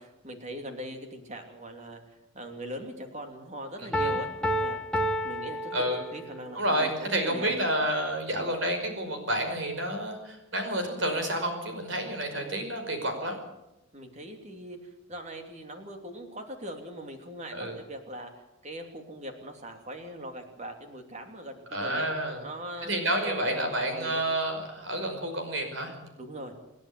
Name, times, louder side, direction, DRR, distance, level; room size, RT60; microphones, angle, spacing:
voice 1, 0.0-2.0 2.3-4.8 5.2-7.5 13.9-18.3 18.6-22.1 22.4-22.9 23.2-23.3 23.8-24.2 26.2-26.5, right 1 dB, 35° right, 5 dB, 2.8 m, -41 dB
Piano, 3.9-6.5, equal, 5° left, 1.7 m, -30 dB
voice 2, 6.5-13.4 17.5-17.8 21.7-22.4 22.8-25.9, right 1 dB, 60° right, 5 dB, 5.4 m, -29 dB
27.5 x 10.5 x 9.5 m, 0.92 s
head